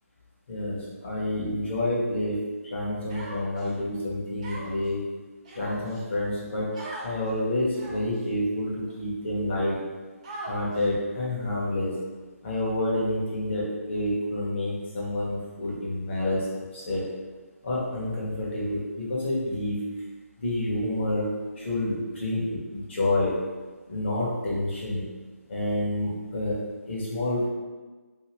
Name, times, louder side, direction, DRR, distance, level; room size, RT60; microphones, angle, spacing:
voice 1, 0.5-2.4 2.7-5.0 5.5-6.7 7.0-9.8 10.4-11.9 12.4-16.5 16.7-17.0 17.6-19.8 20.4-21.3 21.6-23.4 23.9-25.0 25.5-26.6 26.9-27.5, left 1 dB, 45° left, -6 dB, 1.0 m, -28 dB
Human voice, 3.1-3.7 4.4-4.9 5.4-6.0 6.7-7.1 7.7-8.2 8.9-9.0 10.2-10.8, right 1 dB, 25° right, 0.5 m, -40 dB
2.8 x 2.6 x 2.9 m, 1.3 s
figure-of-eight pair, 160°, 8 cm